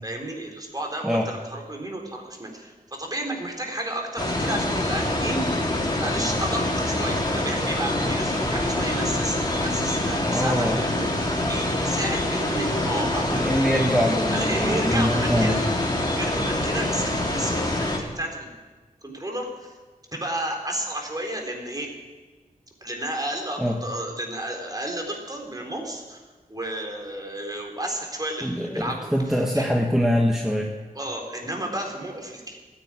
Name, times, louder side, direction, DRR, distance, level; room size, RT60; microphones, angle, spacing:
voice 1, 0.0-5.6 5.9-13.5 14.3-15.6 16.0-18.5 19.0-19.7 20.1-21.9 22.8-29.7 30.9-32.6, right 1 dB, 25° right, 1 dB, 3.9 m, -32 dB
sound 1, 4.2-18.0, left 1 dB, 30° left, 3.1 m, -25 dB
voice 2, 10.3-10.8 13.3-15.6 23.6-23.8 28.4-30.7, equal, 5° right, -1 dB, 1.7 m, -23 dB
15.0 x 9.9 x 9.0 m, 1.3 s
wide cardioid pair, 55°, 14 cm